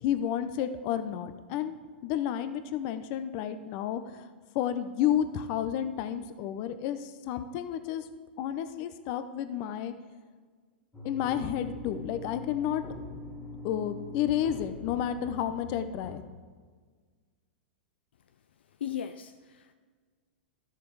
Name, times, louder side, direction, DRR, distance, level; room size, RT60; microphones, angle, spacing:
voice 1, 0.0-1.8 2.0-4.3 4.5-8.1 8.4-9.9 11.0-12.8 13.6-16.2, left 10 dB, 45° left, 10 dB, 0.8 m, -31 dB
sound 1, 10.9-16.1, left 2 dB, 10° left, 2.3 m, -43 dB
voice 2, 18.8-19.7, left 9 dB, 70° left, 9 dB, 0.5 m, -37 dB
12.5 x 6.8 x 4.8 m, 1.5 s
hypercardioid pair, 110°, 6 cm